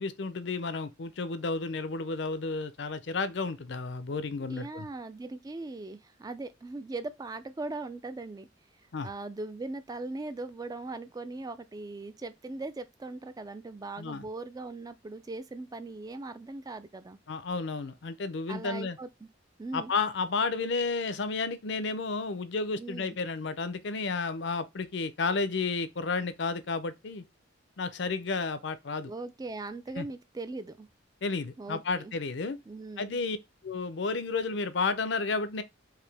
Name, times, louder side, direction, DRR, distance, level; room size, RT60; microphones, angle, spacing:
voice 1, 0.0-4.9 8.9-9.1 14.0-14.3 17.3-19.0 19.7-27.2 27.8-29.1 30.0-30.1 31.2-32.6 33.0-33.4 33.6-35.6, left 4 dB, 65° left, 0.6 m, -32 dB
voice 2, 4.5-8.5 9.0-17.2 18.5-19.3 19.6-19.9 22.8-23.2 29.1-30.9 31.6-32.1 32.7-33.2, right 2 dB, 20° right, 0.3 m, -39 dB
4.9 x 2.7 x 3.3 m
head